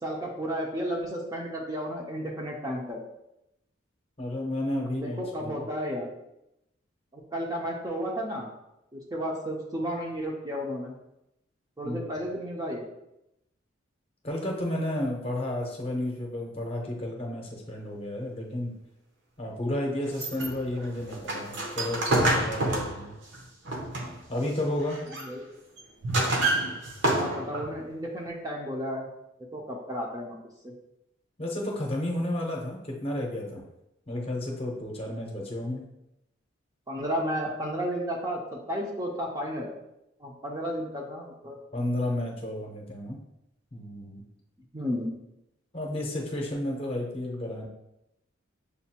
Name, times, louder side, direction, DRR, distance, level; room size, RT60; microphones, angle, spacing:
voice 1, 0.0-3.0 4.9-6.1 7.1-8.5 8.9-10.9 11.8-12.8 25.1-25.5 27.2-29.1 29.5-30.4 30.6-30.7 36.9-39.7 40.2-41.6 44.7-45.1, equal, 20° right, -1 dB, 0.6 m, -33 dB
voice 2, 4.2-5.6 11.8-12.0 14.2-18.7 19.4-23.1 24.3-25.0 31.4-33.6 34.1-35.8 41.7-43.2 43.7-44.2 45.7-47.7, left 1 dB, 30° left, -1 dB, 0.8 m, -32 dB
sound 1, 20.1-24.3 24.8-25.3 25.8-27.8, right 2 dB, 60° right, 0.8 m, -28 dB
6.7 x 2.5 x 2.9 m, 0.86 s
head